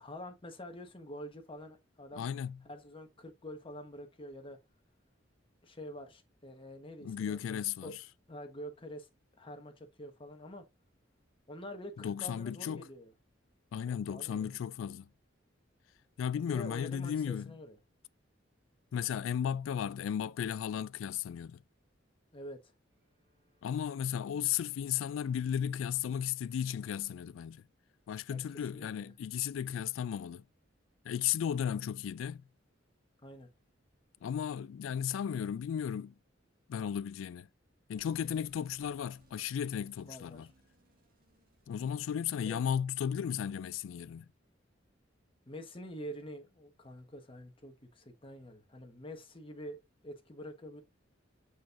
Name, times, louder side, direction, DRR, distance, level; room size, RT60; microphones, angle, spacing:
voice 1, 0.0-2.3 2.6-4.6 5.6-7.9 8.3-9.1 9.4-10.6 11.5-13.1 13.9-14.5 16.3-17.8 22.3-22.6 28.3-29.1 31.7-31.8 33.2-33.5 40.0-40.5 42.5-42.6 45.5-50.8, equal, 30° left, 1.2 m, -47 dB
voice 2, 2.2-2.6 7.0-8.0 12.0-12.8 13.7-15.1 16.2-17.5 18.9-21.6 23.6-27.6 28.1-30.4 31.0-32.4 34.2-36.1 36.7-37.5 37.9-40.5 41.7-44.3, left 8 dB, 90° left, 0.3 m, -35 dB
Bowed string instrument, 22.9-28.1, equal, 65° right, 3.7 m, -76 dB
sound 1, 38.0-42.8, right 2 dB, 50° right, 1.9 m, -67 dB
6.2 x 6.2 x 2.5 m
head